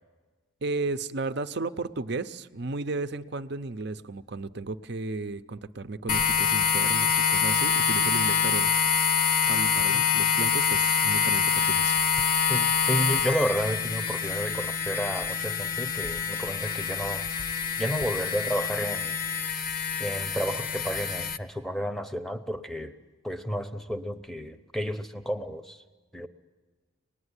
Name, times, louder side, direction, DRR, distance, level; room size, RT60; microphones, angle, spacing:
voice 1, 0.6-8.7 9.5-12.0, right 3 dB, 55° right, 11 dB, 0.7 m, -34 dB
sound 1, 6.1-21.4, left 6 dB, 45° left, 0.8 m, -26 dB
voice 2, 12.5-17.3 17.8-19.2 20.0-22.9 23.2-25.8 26.1-26.3, equal, ahead, 9 dB, 0.8 m, -31 dB
25.5 x 20.0 x 9.8 m, 1.4 s
head